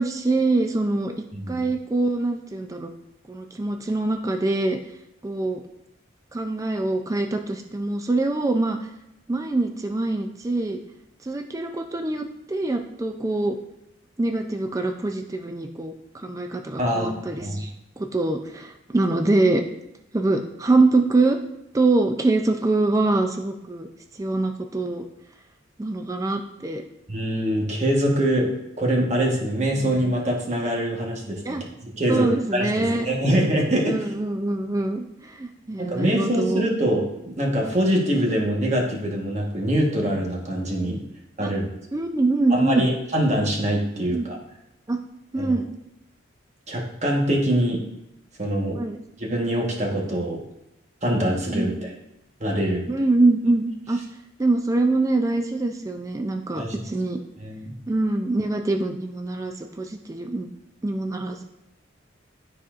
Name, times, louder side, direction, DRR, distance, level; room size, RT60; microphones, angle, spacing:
voice 1, 0.0-1.1 1.5-2.9 3.3-4.8 5.2-5.6 6.3-8.8 9.3-10.8 11.2-13.6 14.2-17.7 18.0-19.6 20.1-21.4 21.7-23.9 24.2-25.0 25.8-26.8 29.8-29.9 31.4-31.6 32.1-33.1 33.8-36.6 40.8-41.0 41.4-41.5 41.9-42.9 44.1-44.3 44.9-45.0 45.3-45.7 48.7-49.0 51.5-51.8 52.9-54.0 54.4-57.2 57.9-60.5 60.8-61.4, right 2 dB, 15° right, 5 dB, 0.3 m, -24 dB
voice 2, 1.3-1.7 16.8-17.6 27.1-28.5 28.8-32.3 32.5-34.0 35.8-41.0 41.4-41.7 42.5-44.4 45.4-45.6 46.7-47.8 48.4-48.8 49.2-50.4 51.0-51.7 52.4-52.9 56.6-56.8 57.4-57.7, right 1 dB, 35° right, -1 dB, 1.3 m, -24 dB
12.5 x 4.2 x 2.5 m, 0.86 s
head